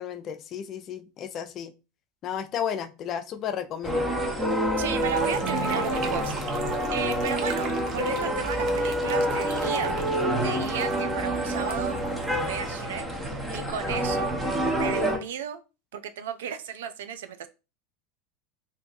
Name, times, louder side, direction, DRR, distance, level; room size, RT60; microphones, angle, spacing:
voice 1, 0.0-1.7 2.2-4.1, left 9 dB, 45° left, 0.4 m, -33 dB
sound 1, 3.8-15.2, right 1 dB, 15° right, 0.9 m, -27 dB
voice 2, 4.8-6.3 6.9-10.0 10.4-12.0 12.4-13.0 13.5-14.3 14.7-15.6 15.9-17.5, right 8 dB, 80° right, 0.4 m, -34 dB
sound 2, 4.9-12.9, right 6 dB, 50° right, 0.7 m, -42 dB
2.7 x 2.3 x 4.1 m
hypercardioid pair, 95°, 0 cm